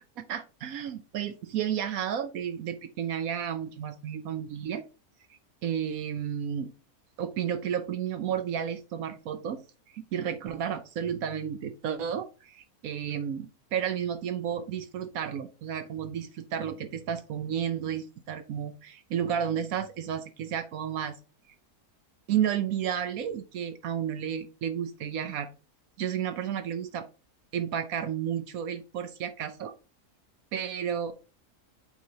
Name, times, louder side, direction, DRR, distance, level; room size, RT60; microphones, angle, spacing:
voice 1, 0.3-4.8 5.3-6.7 7.2-9.6 9.9-21.2 22.3-25.5 26.0-27.1 27.5-29.7 30.5-31.1, right 9 dB, 70° right, 9 dB, 1.1 m, -32 dB
8.5 x 3.1 x 4.0 m, 0.33 s
omnidirectional pair, 1.6 m